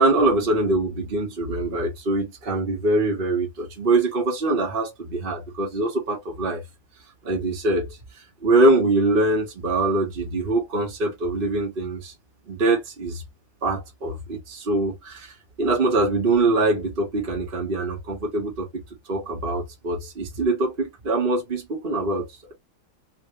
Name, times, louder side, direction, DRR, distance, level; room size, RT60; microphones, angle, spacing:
voice 1, 0.0-6.6 7.2-8.0 8.4-12.1 12.5-13.2 13.6-18.8 19.1-22.5, right 2 dB, 30° right, 1.4 m, -23 dB
3.4 x 2.5 x 3.1 m
omnidirectional pair, 2.1 m